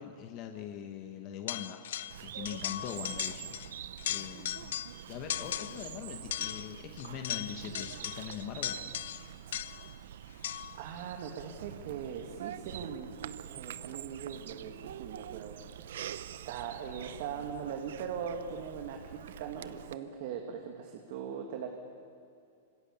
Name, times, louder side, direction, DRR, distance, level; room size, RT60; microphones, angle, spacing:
voice 1, 0.0-1.8 2.2-4.7 5.1-8.8, left 9 dB, 30° left, 4 dB, 1.2 m, -42 dB
sound 1, 1.5-2.2 2.4-3.7 4.0-5.0 5.3-5.9 6.3-9.9 10.4-10.8, left 11 dB, 65° left, 0.8 m, -38 dB
Bird vocalization bird call bird song, 2.1-19.9, right 10 dB, 65° right, 0.8 m, -45 dB
voice 2, 10.7-15.9 16.3-21.7, right 7 dB, 45° right, 3 dB, 2.1 m, -40 dB
27.5 x 25.5 x 7.1 m, 2.4 s
supercardioid pair, 175°, 0 cm